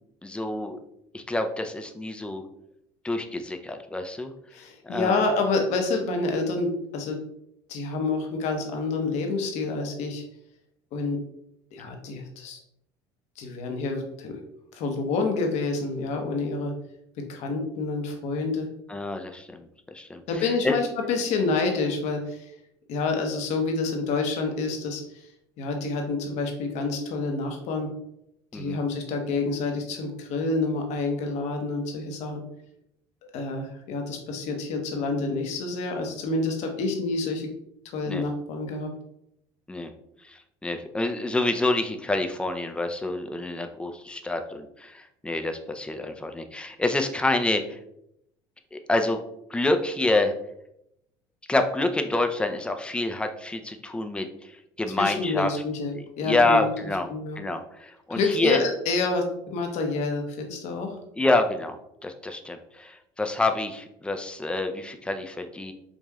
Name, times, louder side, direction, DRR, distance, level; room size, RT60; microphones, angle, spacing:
voice 1, 0.2-0.8 1.1-2.4 3.0-4.3 4.8-5.2 18.9-19.7 19.9-20.8 28.5-28.8 38.1-38.2 39.7-39.9 40.3-47.8 48.7-49.2 49.5-50.3 51.5-54.5 54.8-55.5 55.9-57.1 57.4-58.6 61.2-61.8 62.0-65.7, left 2 dB, 10° left, 6 dB, 0.5 m, -27 dB
voice 2, 4.5-7.2 7.7-10.2 10.9-11.2 11.7-12.6 13.4-14.4 14.7-16.7 17.3-18.7 20.3-22.5 22.9-25.2 25.6-27.9 28.5-32.4 33.3-37.5 37.9-38.9 55.0-56.7 57.1-57.4 58.1-61.0, left 3 dB, 65° left, 3 dB, 0.9 m, -28 dB
5.0 x 2.6 x 2.3 m, 0.77 s
supercardioid pair, 80°, 13 cm